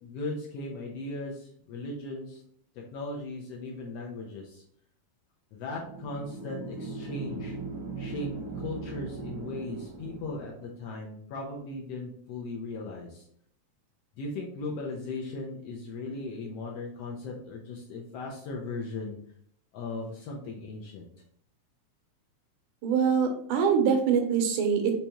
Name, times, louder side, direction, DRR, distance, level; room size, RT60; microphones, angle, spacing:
voice 1, 0.0-2.4 2.7-4.6 5.5-7.5 8.0-8.3 8.5-13.3 14.2-19.2 19.7-21.1, left 2 dB, 75° left, -1 dB, 1.5 m, -37 dB
sound 1, 5.8-10.7, right 3 dB, 65° right, 1.3 m, -39 dB
voice 2, 22.8-25.0, right 6 dB, 90° right, 4 dB, 2.3 m, -24 dB
5.3 x 3.4 x 2.9 m, 0.65 s
omnidirectional pair, 3.4 m